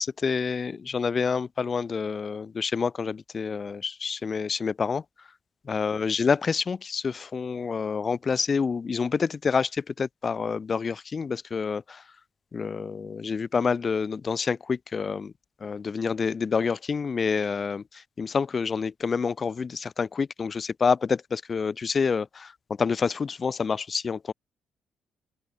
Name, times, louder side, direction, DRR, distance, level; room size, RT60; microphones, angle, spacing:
voice 1, 0.0-5.0 5.6-12.0 12.5-15.3 15.6-22.5 22.8-24.3, left 5 dB, 40° left, 3.2 m, -28 dB
open air
cardioid pair, 90°, 0 cm